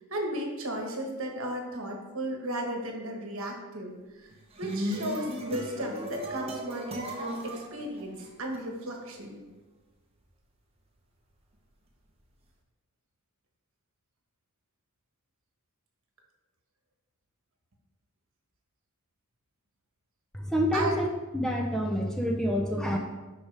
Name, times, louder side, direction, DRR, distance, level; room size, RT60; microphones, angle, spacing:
voice 1, 0.1-4.3 4.6-9.4 20.7-20.9, right 1 dB, 65° right, 1 dB, 1.3 m, -35 dB
sound 1, 4.3-8.6, equal, 25° right, 0.8 m, -36 dB
voice 2, 20.3-21.1 21.3-23.0, equal, 5° left, 1 dB, 0.5 m, -27 dB
10.5 x 4.3 x 3.4 m, 1.2 s
head